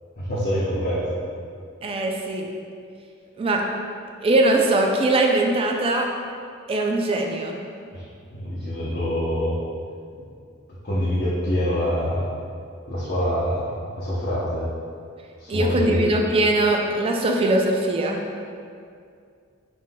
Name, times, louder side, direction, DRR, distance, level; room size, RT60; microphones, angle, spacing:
voice 1, 0.2-1.2 7.9-8.0 8.3-9.6 10.8-12.3 12.9-14.6 15.4-16.0, equal, 45° left, -10 dB, 0.7 m, -25 dB
voice 2, 1.8-2.5 3.4-3.6 4.2-6.1 6.7-7.6 15.5-18.2, right 2 dB, 25° right, 1 dB, 0.3 m, -21 dB
5.5 x 3.2 x 2.2 m, 2.3 s
head